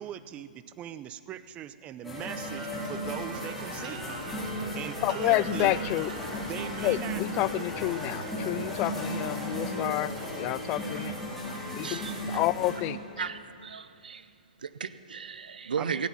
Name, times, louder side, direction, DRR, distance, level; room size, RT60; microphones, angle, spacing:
voice 1, 0.0-4.1 4.7-5.7 6.5-7.2 15.8-16.1, right 10 dB, 25° right, 14 dB, 0.6 m, -40 dB
sound 1, 2.0-12.7, equal, ahead, 3.8 m, -35 dB
sound 2, 2.5-10.8, right 4 dB, 60° right, 2.0 m, -47 dB
voice 2, 5.0-6.1 6.4-6.5 6.8-11.1 11.8-13.0, left 17 dB, 35° left, 18 dB, 0.3 m, -29 dB
voice 3, 11.8-12.4 13.2-14.3 14.6-16.1, right 6 dB, 85° right, 14 dB, 0.6 m, -35 dB
15.5 x 9.4 x 8.6 m, 2.4 s
hypercardioid pair, 125°, 5 cm